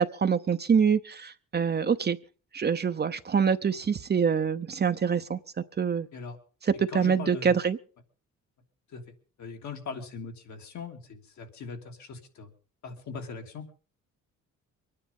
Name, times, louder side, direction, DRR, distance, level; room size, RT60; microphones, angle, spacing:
voice 1, 0.0-2.2 2.5-5.4 5.8-6.1 6.8-7.8, right 6 dB, 35° right, 9 dB, 0.8 m, -25 dB
voice 2, 6.7-7.6 8.9-9.0 9.4-12.5 12.8-13.6, left 5 dB, 70° left, 3 dB, 2.9 m, -40 dB
23.5 x 9.8 x 5.4 m, 0.40 s
cardioid pair, 90°, 30 cm